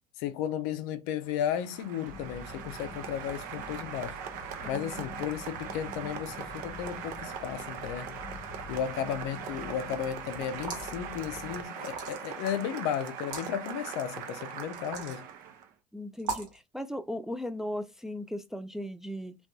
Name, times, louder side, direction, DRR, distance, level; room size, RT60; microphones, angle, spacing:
voice 1, 0.2-4.2 4.7-8.2 8.7-15.2, left 9 dB, 70° left, 0.5 m, -34 dB
Applause, 1.2-15.7, right 8 dB, 60° right, 0.6 m, -41 dB
sound 1, 2.1-11.7, left 5 dB, 30° left, 0.7 m, -47 dB
voice 2, 4.6-5.2 15.9-19.4, left 1 dB, 5° right, 0.3 m, -37 dB
sound 2, 10.5-11.0 11.8-12.4 13.2-13.5 14.7-15.2 16.2-16.6, right 4 dB, 75° right, 1.0 m, -37 dB
2.6 x 2.3 x 2.2 m
hypercardioid pair, 80°, 16 cm